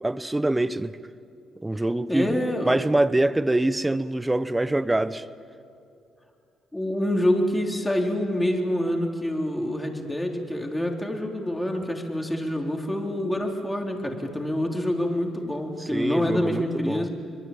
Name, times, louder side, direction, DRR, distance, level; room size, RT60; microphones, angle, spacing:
voice 1, 0.0-1.0 1.6-2.3 2.7-5.2 15.9-17.1, right 1 dB, 10° right, 0.9 m, -24 dB
voice 2, 2.1-2.8 6.7-17.1, left 1 dB, 10° left, 3.8 m, -26 dB
25.0 x 22.0 x 8.8 m
cardioid pair, 90°, 0 cm